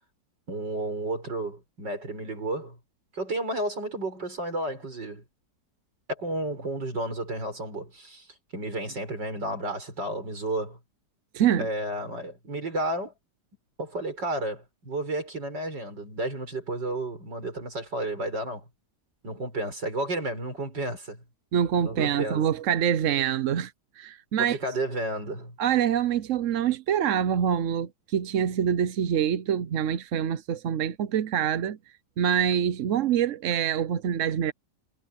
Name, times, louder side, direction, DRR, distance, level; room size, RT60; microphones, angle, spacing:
voice 1, 0.5-2.8 3.1-5.2 6.1-8.3 8.5-10.8 11.6-13.1 13.8-18.7 19.2-21.2 21.8-22.4 24.4-25.6, right 1 dB, 85° right, 7.6 m, -32 dB
voice 2, 11.3-11.7 21.5-24.6 25.6-31.8 32.2-34.5, right 9 dB, 55° right, 0.9 m, -25 dB
omnidirectional pair, 1.9 m